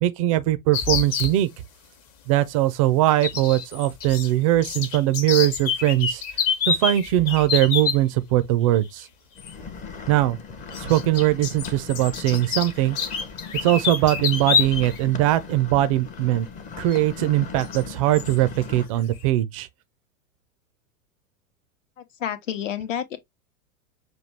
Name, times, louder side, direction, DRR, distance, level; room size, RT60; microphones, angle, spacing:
voice 1, 0.0-1.5 2.3-6.2 6.7-9.1 10.1-10.4 10.7-13.0 13.6-16.5 16.8-19.7, right 15 dB, 25° right, 0.3 m, -21 dB
sound 1, 0.7-1.3 3.2-4.3 4.5-8.0 9.4-9.5 10.7-15.0 15.3-15.4 16.9-17.0 17.6-17.8 18.1-18.4, left 6 dB, 35° left, 0.9 m, -27 dB
sound 2, 9.4-18.9, left 5 dB, 20° left, 0.6 m, -39 dB
voice 2, 22.2-23.2, left 9 dB, 60° left, 0.9 m, -29 dB
5.9 x 2.3 x 3.1 m
figure-of-eight pair, 90°, 43 cm